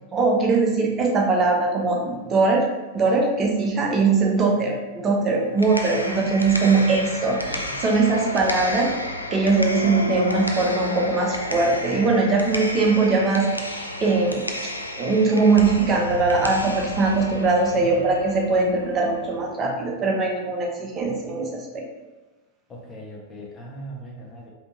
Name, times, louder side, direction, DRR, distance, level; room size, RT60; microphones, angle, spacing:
voice 1, 0.1-2.6 2.9-8.9 9.3-14.7 15.0-21.9, right 3 dB, 25° right, 0 dB, 0.7 m, -21 dB
sound 1, 5.4-19.4, left 1 dB, 85° left, 0.3 m, -32 dB
voice 2, 5.9-7.1 7.5-7.7 17.7-18.1 22.7-24.5, right 1 dB, 20° left, -2 dB, 0.7 m, -39 dB
3.3 x 2.8 x 2.8 m, 1.2 s
figure-of-eight pair, 90°, 0 cm